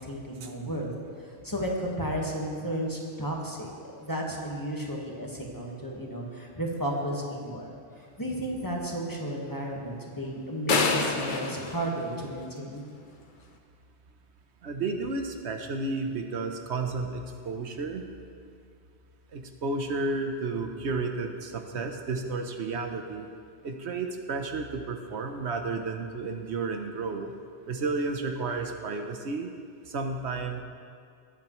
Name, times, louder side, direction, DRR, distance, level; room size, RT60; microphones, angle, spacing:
voice 1, 0.0-0.9 1.2-3.7 4.0-12.9, right 1 dB, 20° left, -2 dB, 1.4 m, -33 dB
sound 1, 10.7-12.8, left 4 dB, 50° left, 0.9 m, -28 dB
voice 2, 14.6-18.1 19.3-23.3 23.6-27.3 27.7-29.5 29.9-30.6, right 3 dB, 75° right, 5 dB, 1.1 m, -32 dB
19.5 x 8.7 x 3.1 m, 2.3 s
omnidirectional pair, 1.1 m